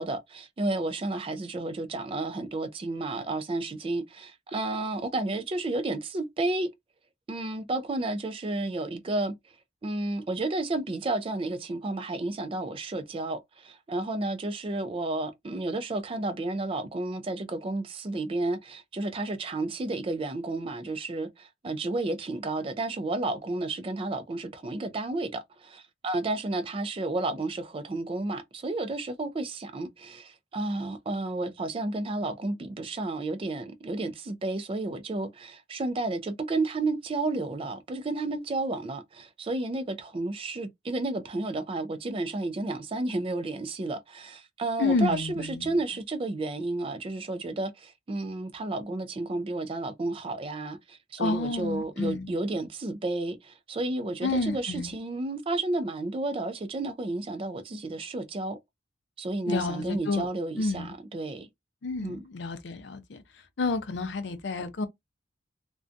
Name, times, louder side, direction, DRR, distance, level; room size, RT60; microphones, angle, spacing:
voice 1, 0.0-6.7 7.3-9.3 9.8-58.6 59.2-61.5 62.0-62.2, right 2 dB, 30° right, 0.3 m, -32 dB
voice 2, 44.8-45.8 51.2-52.3 54.2-54.9 59.5-60.3 60.6-60.9 61.8-63.2 63.6-64.9, left 3 dB, 65° left, 0.5 m, -29 dB
2.5 x 2.2 x 2.4 m
head